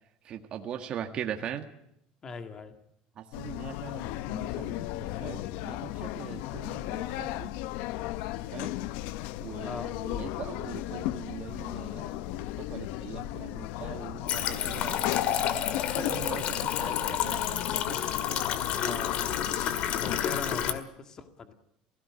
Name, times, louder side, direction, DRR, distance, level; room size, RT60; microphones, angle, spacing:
voice 1, 0.2-1.6 3.2-4.9 5.2-7.5 8.5-8.7 9.4-15.1 15.7-18.0, right 9 dB, 40° right, 4 dB, 1.7 m, -41 dB
voice 2, 2.2-2.8 9.6-9.9 18.4-18.5 18.8-19.1 20.0-21.5, left 4 dB, 25° left, 8 dB, 1.9 m, -40 dB
sound 1, 3.3-20.8, left 15 dB, 70° left, 0.7 m, -35 dB
sound 2, 14.3-20.7, left 10 dB, 50° left, 2.0 m, -30 dB
18.5 x 16.0 x 9.8 m, 0.75 s
cardioid pair, 150°, 3 cm